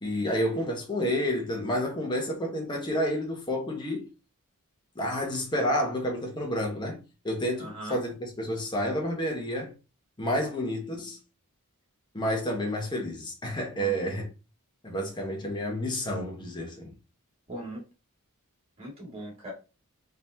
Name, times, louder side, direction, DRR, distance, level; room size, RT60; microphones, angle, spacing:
voice 1, 0.0-4.1 4.9-9.7 10.2-11.2 12.1-14.3 14.8-16.9, equal, 20° left, 1.3 m, -30 dB
voice 2, 7.6-8.0 13.7-13.9 17.5-17.8 18.8-19.5, right 1 dB, 30° right, 2.3 m, -39 dB
3.9 x 3.6 x 2.9 m
head